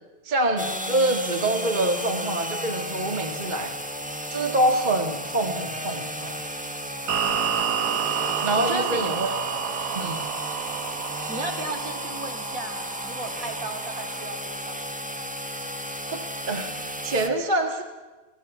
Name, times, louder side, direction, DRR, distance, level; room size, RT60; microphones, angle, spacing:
voice 1, 0.2-3.7 4.3-6.4 8.4-9.3 9.9-10.2 16.1-16.2 16.5-17.8, right 1 dB, 25° right, 5 dB, 1.6 m, -25 dB
sound 1, 0.6-17.3, equal, 5° right, 1.2 m, -34 dB
sound 2, 7.1-14.3, right 7 dB, 65° right, 1.6 m, -30 dB
voice 2, 8.6-9.2 11.3-15.1, right 2 dB, 50° right, 4 dB, 2.8 m, -35 dB
28.0 x 19.0 x 8.2 m, 1.3 s
omnidirectional pair, 1.9 m